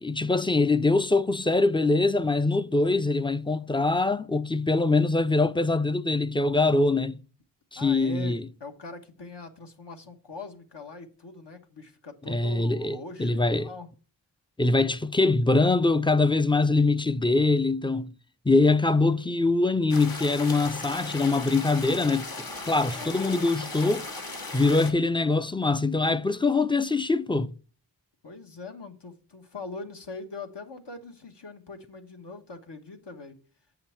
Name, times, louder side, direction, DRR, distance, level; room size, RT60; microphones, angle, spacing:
voice 1, 0.0-7.2 7.7-8.5 12.3-13.7 14.6-18.1 18.5-24.1 24.5-27.5, left 3 dB, 10° left, 0.4 m, -23 dB
voice 2, 7.7-13.9 22.9-23.5 28.2-33.4, left 3 dB, 70° left, 1.3 m, -42 dB
sound 1, 19.9-24.9, left 2 dB, 55° left, 1.4 m, -37 dB
8.1 x 5.7 x 4.4 m
wide cardioid pair, 55°, 43 cm